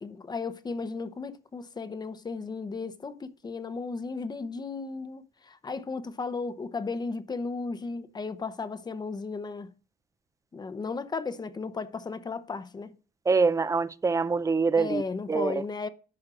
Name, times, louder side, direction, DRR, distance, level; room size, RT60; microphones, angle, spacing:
voice 1, 0.0-9.7 10.5-12.9 14.8-15.9, left 4 dB, 25° left, 0.8 m, -35 dB
voice 2, 13.3-15.0 15.3-15.5, right 4 dB, 20° right, 0.5 m, -24 dB
11.0 x 6.2 x 3.7 m
cardioid pair, 110°, 17 cm